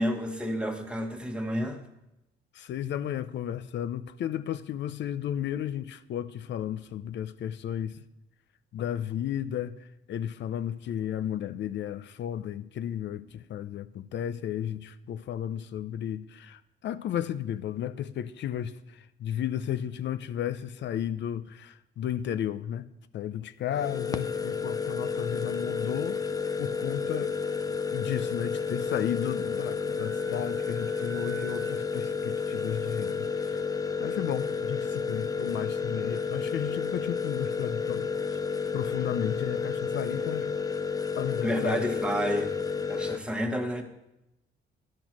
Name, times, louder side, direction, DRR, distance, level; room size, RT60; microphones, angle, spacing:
voice 1, 0.0-1.8 41.4-42.5 42.9-43.8, equal, 5° right, 1.4 m, -30 dB
voice 2, 2.5-8.0 8.7-22.9 23.1-26.2 26.6-27.4 27.9-33.6 34.0-38.1 38.7-40.5 41.2-41.8, left 10 dB, 65° left, 0.6 m, -33 dB
sound 1, 23.7-43.2, left 5 dB, 20° left, 0.5 m, -31 dB
Wind instrument woodwind instrument, 30.0-33.4, right 7 dB, 70° right, 1.2 m, -48 dB
10.5 x 6.1 x 6.1 m
cardioid pair, 90°, 20 cm